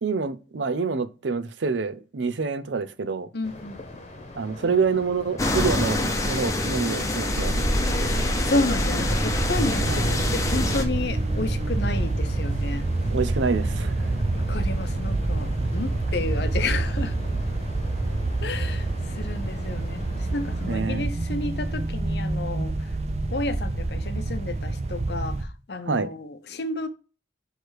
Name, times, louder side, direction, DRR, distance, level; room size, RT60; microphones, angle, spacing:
voice 1, 0.0-3.3 4.3-6.0 6.2-7.6 9.9-10.0 13.1-14.1 20.7-21.0 25.8-26.1, right 5 dB, 85° right, 0.6 m, -27 dB
voice 2, 3.3-4.0 7.9-12.9 14.3-17.1 18.4-22.9 23.3-26.9, left 2 dB, 65° left, 0.7 m, -31 dB
sound 1, 3.4-20.8, left 2 dB, 35° left, 1.1 m, -42 dB
sound 2, 5.4-10.8, left 2 dB, 20° left, 0.7 m, -26 dB
sound 3, 7.3-25.4, right 2 dB, 35° right, 0.5 m, -27 dB
6.3 x 3.3 x 4.6 m
head